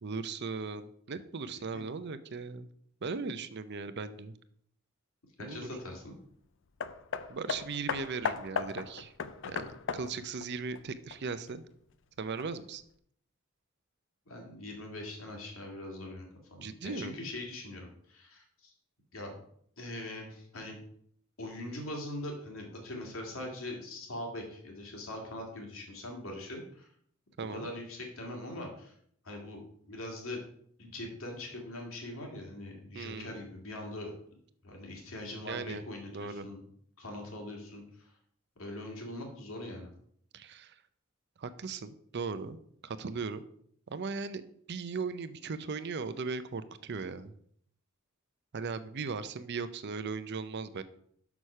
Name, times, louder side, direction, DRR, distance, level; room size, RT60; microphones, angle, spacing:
voice 1, 0.0-2.7 3.0-4.3 5.4-5.7 7.3-9.1 9.4-11.6 12.2-12.8 16.6-17.1 27.4-27.7 32.9-33.3 35.5-35.8 36.1-36.5 40.3-40.7 41.4-43.4 43.9-44.4 44.7-47.3 48.5-50.8, right 4 dB, 55° right, 13 dB, 0.6 m, -38 dB
voice 2, 5.4-6.1 14.3-18.7 19.1-19.3 19.8-20.8 21.4-26.9 27.5-28.9 29.2-29.6 29.9-30.4 30.8-34.1 34.6-36.6 37.0-38.1 38.6-39.9, left 1 dB, 80° left, 1 dB, 2.2 m, -42 dB
Hammer, 6.8-11.5 12.4-12.5, left 6 dB, 65° left, 0.5 m, -37 dB
6.5 x 6.0 x 5.5 m, 0.66 s
head